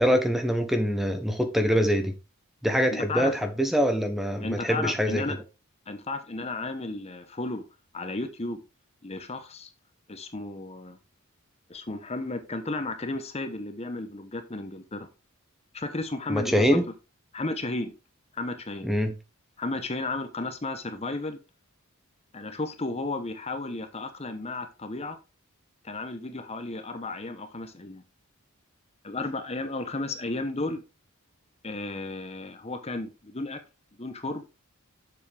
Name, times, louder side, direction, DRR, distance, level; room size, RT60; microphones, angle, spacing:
voice 1, 0.0-2.2 2.6-5.2 16.3-16.8 18.8-19.1, equal, ahead, 0.9 m, -24 dB
voice 2, 2.9-3.4 4.4-5.4 5.9-7.6 7.9-8.6 9.0-9.7 10.1-11.0 11.7-15.1 15.7-16.8 17.3-17.9 18.3-18.9 19.6-21.4 22.3-25.2 25.8-28.0 29.0-30.8 31.6-33.6 34.0-34.4, left 2 dB, 30° left, 0.9 m, -33 dB
7.4 x 7.2 x 3.4 m
head